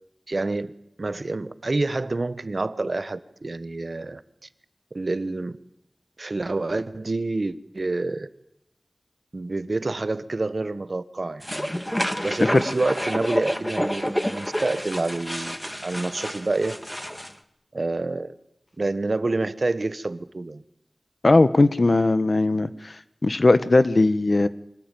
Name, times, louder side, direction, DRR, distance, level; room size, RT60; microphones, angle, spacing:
voice 1, 0.3-0.7 1.0-4.2 4.9-5.5 6.2-8.3 9.3-11.7 12.2-15.6 15.8-16.7 17.7-18.3 18.8-20.6, right 2 dB, 60° right, 13 dB, 1.2 m, -27 dB
sound 1, 11.4-17.3, equal, 10° left, 1.9 m, -29 dB
voice 2, 21.2-23.0 23.2-24.5, left 2 dB, 60° left, 13 dB, 1.3 m, -18 dB
25.5 x 18.5 x 9.2 m, 0.81 s
wide cardioid pair, 60°, 0 cm